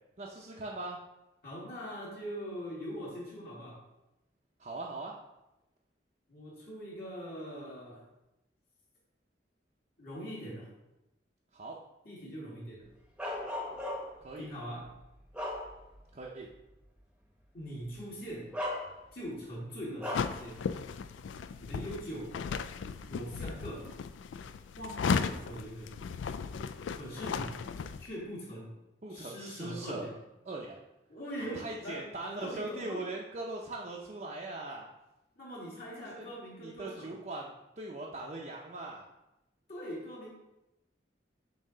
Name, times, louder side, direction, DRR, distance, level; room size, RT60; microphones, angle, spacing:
voice 1, 0.2-1.0 4.6-5.2 11.5-11.8 14.2-14.5 16.1-16.5 29.0-30.1 30.5-30.8 31.4-34.9 36.0-36.3 36.6-39.0, right 2 dB, 40° right, -2 dB, 0.6 m, -40 dB
voice 2, 1.4-3.8 6.3-8.1 10.0-10.7 12.0-12.9 14.4-14.9 17.5-18.5 19.1-20.6 21.6-22.4 23.0-23.9 24.8-26.0 26.9-27.6 28.0-28.7 29.1-30.1 31.1-32.0 32.3-33.0 35.4-37.1 39.7-40.3, equal, 55° left, -6 dB, 1.9 m, -42 dB
Bark, 13.2-14.3 14.9-16.1 16.5-16.7 17.8-18.0 18.5-19.3 20.0-20.4, left 1 dB, 5° right, 0.8 m, -37 dB
sound 1, 20.1-28.1, left 5 dB, 85° left, 0.3 m, -36 dB
7.3 x 2.9 x 5.5 m, 0.94 s
head